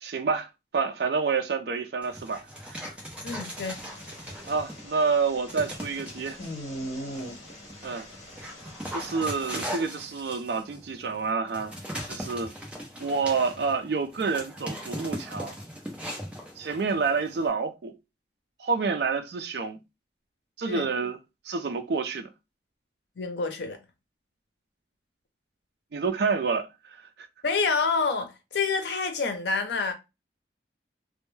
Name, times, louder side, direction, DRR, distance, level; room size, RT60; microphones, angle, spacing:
voice 1, 0.0-2.4 4.5-6.4 7.8-8.1 8.9-11.7 12.1-12.5 13.0-15.6 16.6-18.0 18.6-19.8 20.6-21.2 21.5-22.3 25.9-27.3, right 5 dB, 60° right, 0.4 m, -28 dB
Dog, 2.0-4.9 5.5-6.5 7.1-17.5, equal, 5° right, 0.6 m, -39 dB
voice 2, 3.2-3.8 20.7-20.9 23.2-23.8 27.4-29.9, left 4 dB, 75° left, 0.6 m, -28 dB
sound 1, 3.6-9.7, equal, 45° left, 1.1 m, -42 dB
2.1 x 2.1 x 3.1 m
head